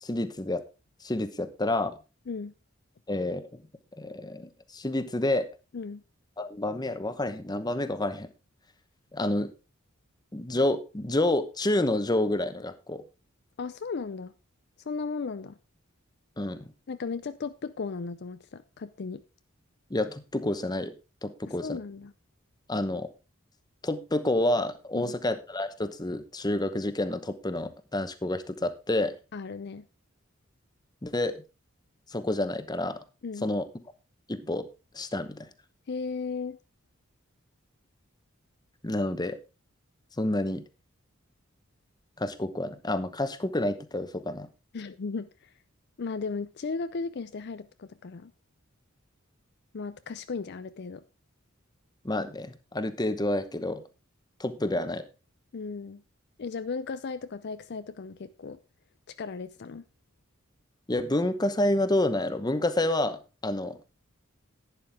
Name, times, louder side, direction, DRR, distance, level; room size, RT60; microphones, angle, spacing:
voice 1, 0.0-0.6 1.0-2.0 3.1-3.5 4.0-5.5 6.4-8.3 9.1-9.5 10.3-13.0 16.4-16.6 19.9-20.9 21.2-21.8 22.7-23.1 23.8-29.1 31.0-31.4 32.1-33.0 33.4-33.7 34.3-34.7 34.9-35.5 38.8-39.4 40.2-40.6 42.2-44.5 52.0-53.8 54.4-55.0 60.9-63.8, left 1 dB, 20° left, 0.9 m, -29 dB
voice 2, 13.6-14.3 14.8-15.6 16.9-19.2 21.5-22.1 24.9-25.1 29.3-29.9 33.2-33.5 35.9-36.6 44.7-45.5 46.0-48.3 49.7-51.0 55.5-56.0 56.4-58.6 59.1-59.8, left 4 dB, 55° left, 0.5 m, -36 dB
11.5 x 9.6 x 3.5 m
head